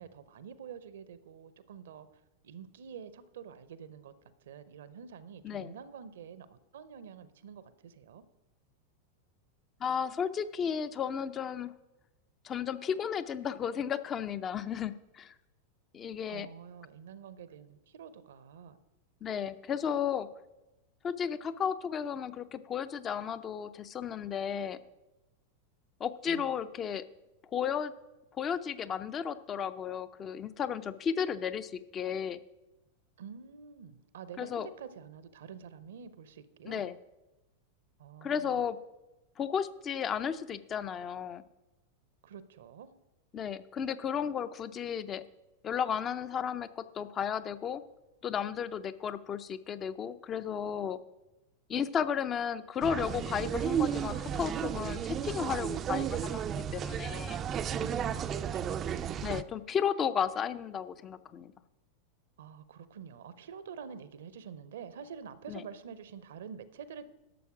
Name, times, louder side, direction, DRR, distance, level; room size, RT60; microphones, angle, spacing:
voice 1, 0.0-2.1 2.4-4.1 4.4-8.2 16.3-18.8 26.3-26.5 33.2-36.9 38.0-38.6 42.2-42.9 57.8-59.1 62.4-67.1, right 7 dB, 60° right, 14 dB, 0.7 m, -47 dB
voice 2, 9.8-11.7 12.4-15.3 15.9-16.5 19.2-20.3 21.0-24.8 26.0-27.0 27.5-27.9 28.4-32.4 34.4-34.7 36.7-37.0 38.2-38.8 39.4-41.4 43.3-45.2 45.6-47.8 48.2-51.0 51.7-57.4 59.2-61.5 65.5-65.6, left 7 dB, 25° left, 13 dB, 0.5 m, -34 dB
sound 1, 52.8-59.4, right 8 dB, 30° right, 0.4 m, -33 dB
12.0 x 7.0 x 4.9 m, 1.0 s
figure-of-eight pair, 90°, 0 cm